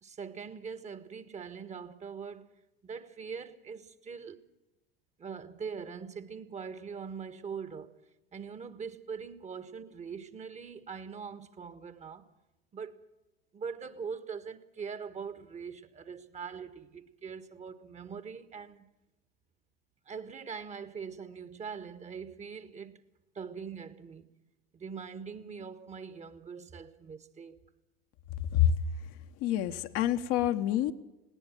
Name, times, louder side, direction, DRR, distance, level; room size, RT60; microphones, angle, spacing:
voice 1, 0.0-4.4 5.2-7.9 8.3-12.3 12.7-13.0 13.5-18.9 20.0-23.0 23.3-24.3 24.7-27.6, right 6 dB, 25° right, 1.5 m, -42 dB
voice 2, 29.4-30.9, left 11 dB, 50° left, 1.2 m, -27 dB
19.5 x 18.5 x 7.5 m
figure-of-eight pair, 75°, 30 cm